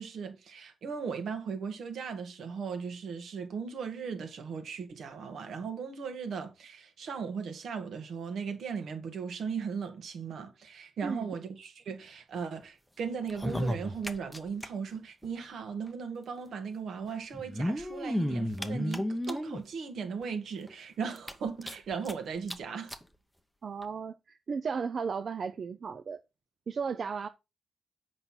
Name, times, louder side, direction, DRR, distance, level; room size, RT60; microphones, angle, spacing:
voice 1, 0.0-22.9, right 6 dB, 65° right, 1.6 m, -37 dB
sound 1, 13.2-14.7 14.9-15.0 15.2-15.3 16.4-16.5 17.3-19.6 20.2-20.3 20.7-20.8 21.2-22.1 22.5-22.6 22.9-23.0 23.8-23.9, equal, ahead, 0.7 m, -33 dB
voice 2, 23.6-26.2 26.7-27.3, right 5 dB, 40° right, 0.4 m, -35 dB
7.9 x 5.5 x 4.3 m
wide cardioid pair, 170°, 0 cm